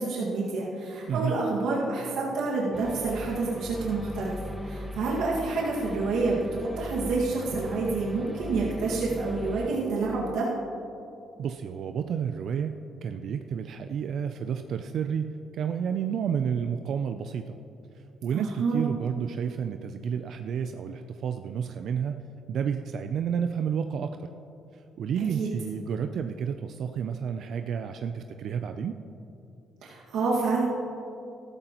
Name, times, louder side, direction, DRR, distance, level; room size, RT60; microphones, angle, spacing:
voice 1, 0.0-4.4 4.6-10.5 18.3-18.9 25.4-25.5 29.8-30.6, right 3 dB, 85° right, -5 dB, 1.8 m, -28 dB
sound 1, 2.7-9.7, equal, 5° left, 1.2 m, -39 dB
voice 2, 11.4-17.6 18.2-22.2 22.5-24.2 24.7-29.0, right 7 dB, 70° right, 7 dB, 0.4 m, -31 dB
13.5 x 13.5 x 3.0 m, 2.8 s
cardioid pair, 90°, 0 cm